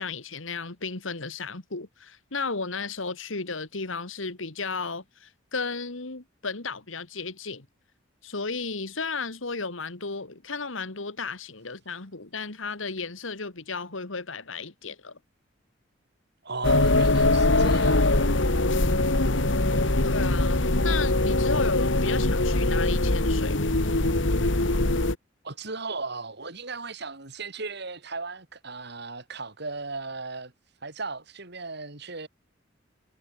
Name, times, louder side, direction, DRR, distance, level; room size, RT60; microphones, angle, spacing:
voice 1, 0.0-7.7 8.2-15.2 20.0-23.6, left 4 dB, 85° left, 2.2 m, -34 dB
voice 2, 16.4-18.1 25.4-30.5 30.8-32.3, right 3 dB, 60° right, 4.0 m, -36 dB
sound 1, 16.6-25.1, left 2 dB, 70° left, 2.1 m, -22 dB
head